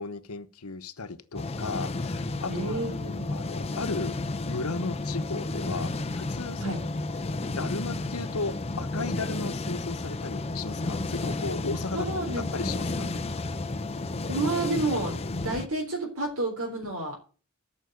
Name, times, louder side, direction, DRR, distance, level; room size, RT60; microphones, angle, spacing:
voice 1, 0.0-2.8 3.3-4.2 4.5-6.8 7.4-12.1 12.5-13.2 15.3-15.5, left 3 dB, 85° left, 1.1 m, -35 dB
sound 1, 1.3-15.7, left 2 dB, 30° left, 0.7 m, -32 dB
voice 2, 2.5-3.3 6.6-6.8 11.9-12.5 12.9-13.3 14.3-15.2 15.4-17.2, right 2 dB, 85° right, 3.6 m, -30 dB
13.0 x 6.3 x 8.0 m
head